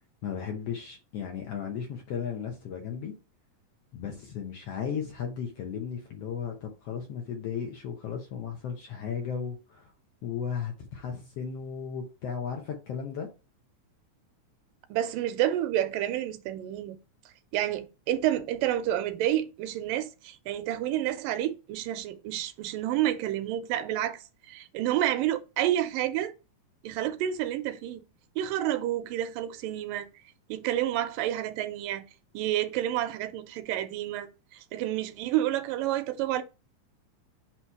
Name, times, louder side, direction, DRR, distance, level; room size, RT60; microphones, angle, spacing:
voice 1, 0.2-3.1 3.9-9.9 10.2-13.3, left 7 dB, 65° left, 1.6 m, -35 dB
voice 2, 14.9-17.0 17.5-24.2 24.5-26.3 26.8-28.0 28.4-30.1 30.5-32.0 32.3-34.3 34.7-36.4, right 12 dB, 85° right, 2.3 m, -29 dB
8.3 x 3.0 x 4.7 m
omnidirectional pair, 3.8 m